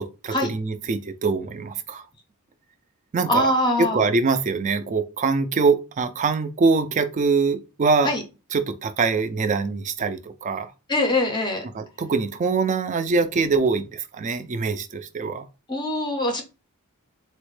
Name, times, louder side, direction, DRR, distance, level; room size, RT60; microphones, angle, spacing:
voice 1, 0.0-2.0 3.1-3.4 3.8-8.1 8.5-10.7 11.7-15.5, right 4 dB, 35° right, 0.3 m, -23 dB
voice 2, 3.3-4.1 8.0-8.2 10.9-11.6 15.7-16.4, left 1 dB, 20° left, 0.5 m, -23 dB
4.0 x 2.1 x 3.1 m
head